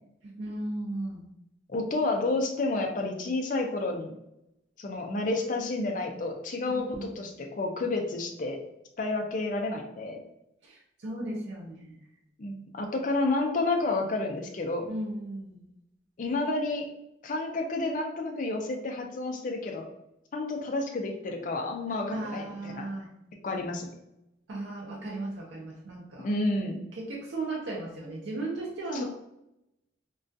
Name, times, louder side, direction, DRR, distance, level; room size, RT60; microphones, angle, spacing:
voice 1, 0.2-1.2 6.7-7.1 10.6-12.0 14.9-15.6 22.1-23.1 24.5-26.3 26.9-29.0, right 2 dB, 75° right, -3 dB, 0.5 m, -36 dB
voice 2, 1.7-4.1 4.8-8.6 9.0-10.2 12.4-14.9 16.2-16.9 17.2-19.9 20.3-22.9 23.4-23.9 26.2-26.8 28.9-29.0, left 2 dB, 45° left, 3 dB, 0.4 m, -30 dB
2.3 x 2.2 x 2.5 m, 0.82 s
head